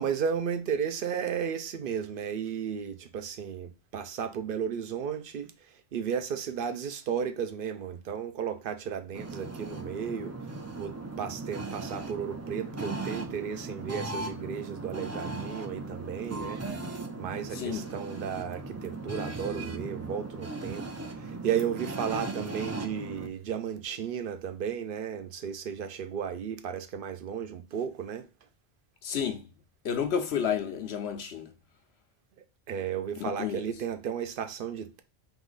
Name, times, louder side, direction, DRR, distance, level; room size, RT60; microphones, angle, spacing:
voice 1, 0.0-5.5 5.9-10.3 10.8-16.6 17.2-20.9 21.1-28.2 32.7-35.0, right 7 dB, 60° right, 0.7 m, -34 dB
sound 1, 9.1-23.3, right 3 dB, 25° right, 0.3 m, -37 dB
voice 2, 17.5-17.8 29.0-29.5 29.8-31.5 33.3-33.6, left 8 dB, 80° left, 0.9 m, -31 dB
3.9 x 3.0 x 3.8 m
omnidirectional pair, 1.1 m